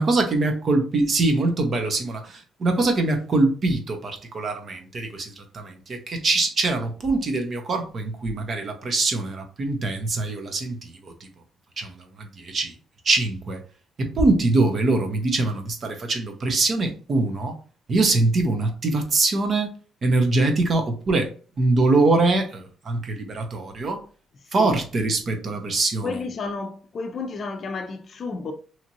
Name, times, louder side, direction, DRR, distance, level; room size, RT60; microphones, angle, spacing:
voice 1, 0.0-11.1 11.8-12.7 13.0-13.6 14.0-17.5 17.9-19.7 20.0-21.3 21.6-24.0 24.5-26.2, right 2 dB, 50° right, 0.8 m, -23 dB
voice 2, 26.0-28.5, left 4 dB, 50° left, 0.5 m, -31 dB
2.9 x 2.5 x 2.8 m
cardioid pair, 90°, 0 cm